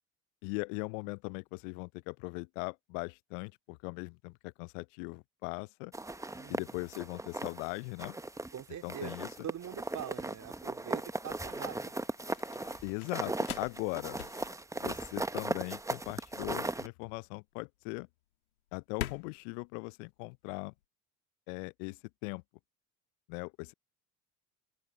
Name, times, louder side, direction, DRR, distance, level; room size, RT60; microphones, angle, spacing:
voice 1, 0.4-5.9 6.5-8.2 8.8-9.3 12.8-14.2 14.8-18.1 18.7-20.7 21.5-22.4 23.3-23.7, left 33 dB, 65° left, 0.6 m, -39 dB
sound 1, 5.9-7.7 8.0-8.6 8.9-16.9, right 2 dB, 5° right, 1.2 m, -37 dB
voice 2, 6.3-6.8 8.5-9.1 9.4-12.1, right 10 dB, 40° right, 3.0 m, -43 dB
sound 2, 8.2-20.8, left 13 dB, 80° left, 1.9 m, -48 dB
open air
hypercardioid pair, 65°, 42 cm